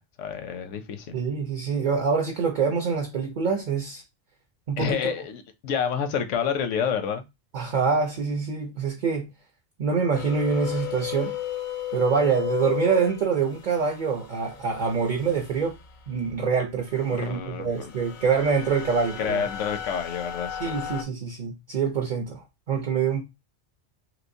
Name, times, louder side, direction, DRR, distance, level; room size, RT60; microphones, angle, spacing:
voice 1, 0.0-1.1 4.8-7.2 17.1-17.9 19.2-20.8, left 7 dB, 90° left, 1.0 m, -29 dB
voice 2, 1.1-4.0 4.7-5.0 7.5-9.3 9.8-11.3 11.9-15.7 16.1-19.4 20.6-23.2, right 5 dB, 50° right, 0.6 m, -25 dB
sound 1, 10.1-16.3 16.8-21.0, left 11 dB, 55° left, 0.6 m, -35 dB
3.1 x 2.9 x 2.6 m
omnidirectional pair, 1.2 m